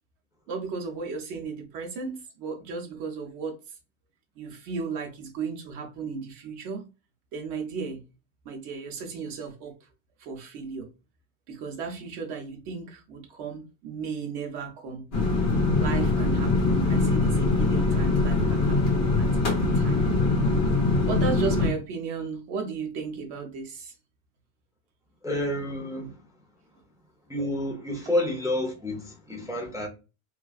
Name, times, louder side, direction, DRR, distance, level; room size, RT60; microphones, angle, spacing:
voice 1, 0.5-3.8 4.4-6.8 7.3-8.0 8.4-9.9 10.2-10.9 11.5-15.1 15.8-20.0 21.1-23.9, right 5 dB, 85° right, 0.9 m, -35 dB
sound 1, 15.1-21.7, left 2 dB, 90° left, 1.3 m, -23 dB
voice 2, 25.2-26.2 27.3-29.9, left 1 dB, 5° right, 0.4 m, -29 dB
3.2 x 2.3 x 2.3 m
omnidirectional pair, 1.1 m